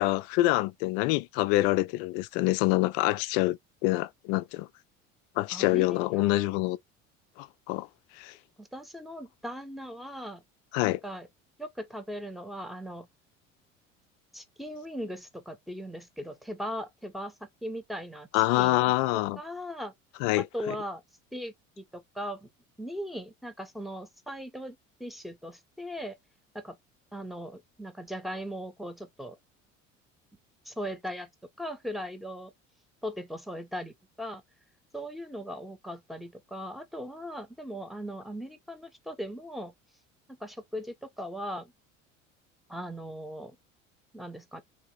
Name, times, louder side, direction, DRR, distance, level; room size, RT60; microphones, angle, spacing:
voice 1, 0.0-3.6 3.8-4.7 5.4-6.8 7.4-7.9 8.2-8.3 10.7-11.0 18.3-19.4 20.2-20.5, left 18 dB, 50° left, 0.5 m, -26 dB
voice 2, 5.5-6.5 8.6-10.4 11.0-11.3 11.6-13.1 14.3-18.3 18.6-18.8 19.4-19.9 20.4-21.0 21.3-22.5 22.8-26.2 26.5-26.8 27.1-29.4 30.6-31.3 31.6-32.5 33.0-34.4 34.9-39.7 40.3-41.7 42.7-43.6 44.1-44.6, equal, ahead, 0.9 m, -39 dB
3.6 x 2.9 x 4.4 m
figure-of-eight pair, 65°, 39 cm